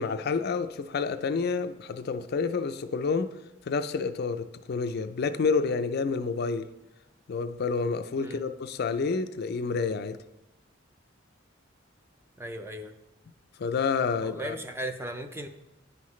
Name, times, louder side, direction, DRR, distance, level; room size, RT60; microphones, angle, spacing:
voice 1, 0.0-3.4 3.7-6.7 7.3-10.2 13.6-14.6, left 4 dB, 55° left, 9 dB, 0.4 m, -29 dB
voice 2, 12.4-12.9 14.2-15.5, right 1 dB, 10° right, 7 dB, 0.5 m, -37 dB
9.5 x 5.6 x 3.1 m, 0.98 s
head